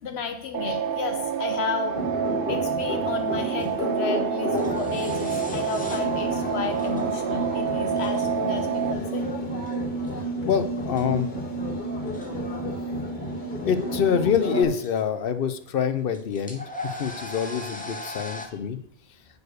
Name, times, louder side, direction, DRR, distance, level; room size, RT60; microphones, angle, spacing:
voice 1, 0.0-2.0 2.5-9.2, left 5 dB, 90° left, 6 dB, 1.1 m, -32 dB
sound 1, 0.5-8.9, right 7 dB, 65° right, 0.8 m, -28 dB
sound 2, 1.9-14.6, right 1 dB, 50° left, 1.8 m, -30 dB
sound 3, 3.2-18.5, left 1 dB, 10° left, 0.9 m, -41 dB
voice 2, 10.4-11.3 13.6-18.8, left 7 dB, 65° left, 10 dB, 0.9 m, -25 dB
8.1 x 4.6 x 6.5 m, 0.65 s
omnidirectional pair, 1.1 m